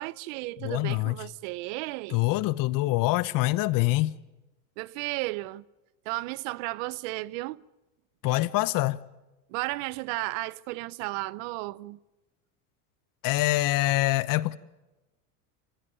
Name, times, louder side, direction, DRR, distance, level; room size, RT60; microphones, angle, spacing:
voice 1, 0.0-2.2 4.8-5.6 6.1-7.6 9.5-12.0, right 21 dB, 65° right, 0.8 m, -34 dB
voice 2, 0.6-1.2 2.1-4.1 8.2-9.0 13.2-14.6, left 18 dB, 50° left, 1.0 m, -25 dB
26.5 x 15.0 x 9.2 m
supercardioid pair, 110°, 42 cm